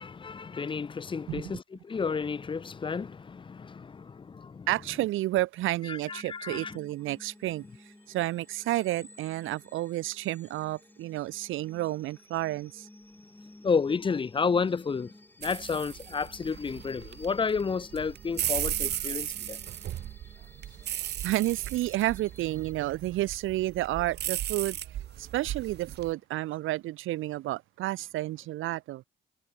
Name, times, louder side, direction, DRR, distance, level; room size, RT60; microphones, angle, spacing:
voice 1, 0.0-4.7 5.9-6.8 13.6-15.1 15.4-19.6, left 5 dB, 25° left, 0.6 m, -31 dB
voice 2, 4.7-7.6 8.1-12.9 21.2-24.8 25.2-29.0, right 16 dB, 85° right, 0.9 m, -31 dB
sound 1, 5.9-22.7, left 1 dB, 10° left, 6.3 m, -54 dB
sound 2, 15.4-26.1, right 12 dB, 55° right, 0.5 m, -36 dB
cardioid pair, 90°, 20 cm